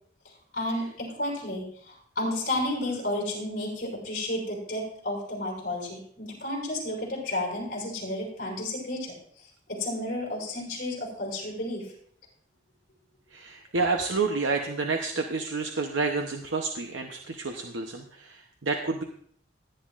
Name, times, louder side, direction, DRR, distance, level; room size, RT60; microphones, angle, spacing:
voice 1, 0.2-11.9, left 1 dB, 50° left, -3 dB, 5.7 m, -32 dB
voice 2, 13.3-19.0, right 4 dB, 85° right, 3 dB, 0.9 m, -29 dB
17.5 x 10.5 x 2.5 m, 0.62 s
head